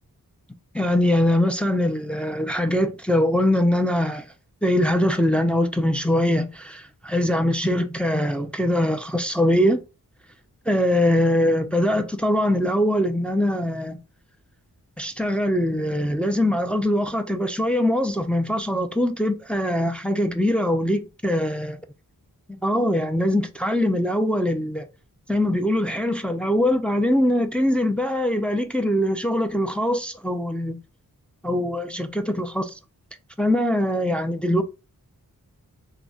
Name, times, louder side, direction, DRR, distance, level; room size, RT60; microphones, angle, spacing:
voice 1, 0.7-4.3 4.6-9.8 10.7-14.0 15.0-21.8 22.6-24.9 25.3-30.8 31.4-32.8 33.4-34.6, left 1 dB, 5° left, 0.3 m, -22 dB
3.7 x 2.1 x 2.3 m
wide cardioid pair, 65°, 36 cm